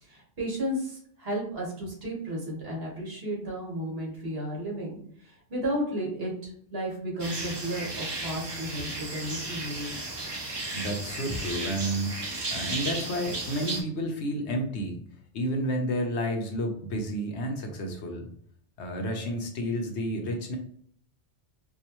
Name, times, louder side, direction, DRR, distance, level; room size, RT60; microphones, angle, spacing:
voice 1, 0.0-9.9, equal, 65° right, -3 dB, 1.6 m, -33 dB
sound 1, 7.2-13.8, right 2 dB, 30° right, 0.6 m, -34 dB
voice 2, 10.7-12.2 12.5-15.0 15.3-18.3 18.8-20.6, equal, 90° left, 3 dB, 1.1 m, -30 dB
4.6 x 2.4 x 3.0 m, 0.62 s
omnidirectional pair, 1.1 m